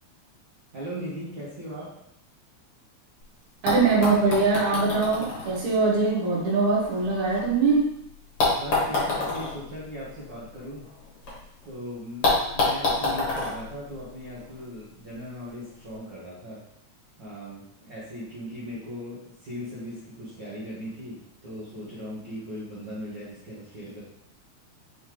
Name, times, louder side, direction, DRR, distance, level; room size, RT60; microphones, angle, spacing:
voice 1, 0.7-1.9 8.5-10.9 11.6-16.6 17.2-24.0, equal, 55° right, -8 dB, 1.3 m, -38 dB
sound 1, 3.2-3.3 3.7-7.7 8.4-11.3 11.6-11.7 12.2-14.6 15.6-15.7, left 3 dB, 55° left, 2.0 m, -29 dB
voice 2, 3.6-7.9, right 4 dB, 80° right, -4 dB, 2.7 m, -22 dB
5.5 x 3.2 x 3.0 m, 0.75 s
omnidirectional pair, 3.4 m